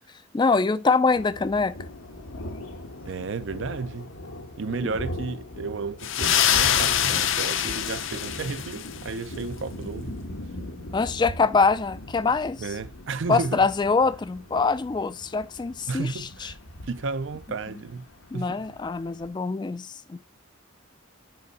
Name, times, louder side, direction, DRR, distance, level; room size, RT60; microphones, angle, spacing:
voice 1, 0.3-1.7 4.8-4.9 10.9-12.6 13.3-16.5 18.3-20.2, left 4 dB, 20° left, 0.3 m, -24 dB
sound 1, 1.1-19.3, left 1 dB, 90° left, 1.2 m, -40 dB
voice 2, 3.1-4.1 4.6-10.1 12.6-13.7 15.9-16.6 16.8-18.1 18.3-18.8, right 4 dB, 65° right, 0.5 m, -33 dB
sound 2, 6.0-9.0, left 10 dB, 70° left, 0.7 m, -24 dB
7.8 x 5.1 x 4.0 m
head